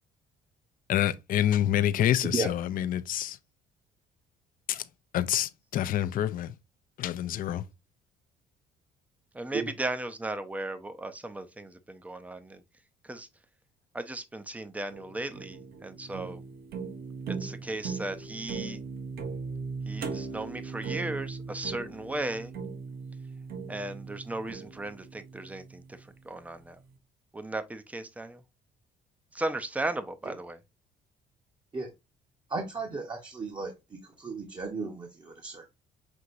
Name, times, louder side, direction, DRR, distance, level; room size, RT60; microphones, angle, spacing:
voice 1, 0.9-3.4 4.7-4.8 5.1-6.5 7.0-7.6, left 11 dB, 55° left, 0.5 m, -27 dB
voice 2, 9.3-12.6 13.0-13.3 13.9-16.4 17.3-18.8 19.9-22.5 23.7-26.8 27.3-28.4 29.3-30.6, right 2 dB, 10° right, 0.6 m, -36 dB
sound 1, 14.9-26.1, right 5 dB, 65° right, 1.0 m, -39 dB
voice 3, 32.5-33.7 34.2-35.7, right 4 dB, 25° right, 1.0 m, -34 dB
6.1 x 2.8 x 2.6 m
cardioid pair, 110°, 17 cm